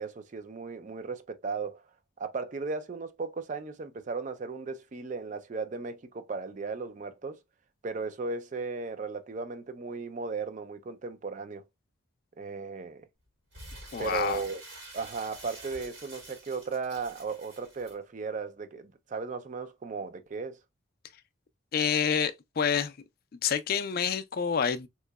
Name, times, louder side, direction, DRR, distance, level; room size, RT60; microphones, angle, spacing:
voice 1, 0.0-1.8 2.2-7.4 7.8-11.6 12.4-13.1 14.0-14.6 14.9-20.6, right 4 dB, 40° right, 0.4 m, -36 dB
Crumpling crinkling, 13.5-17.9, right 2 dB, 55° right, 1.8 m, -47 dB
voice 2, 13.9-14.4 21.7-23.0 23.4-24.9, left 7 dB, 50° left, 0.4 m, -28 dB
3.6 x 3.0 x 2.2 m
head